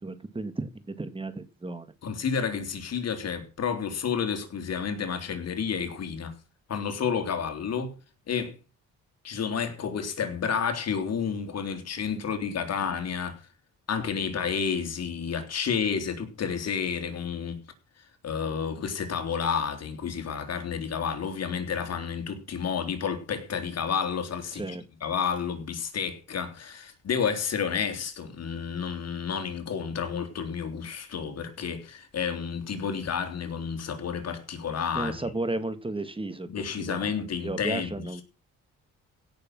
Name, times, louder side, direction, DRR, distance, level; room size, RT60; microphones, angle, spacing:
voice 1, 0.0-1.9 24.5-24.8 34.9-36.5 36.9-38.2, right 2 dB, 15° right, 1.9 m, -34 dB
voice 2, 2.0-6.3 6.7-8.0 8.3-8.5 9.2-13.4 13.9-17.6 18.2-24.8 25.0-35.3 36.5-38.2, left 6 dB, 55° left, 3.4 m, -30 dB
16.5 x 6.7 x 6.1 m
cardioid pair, 90°, 30 cm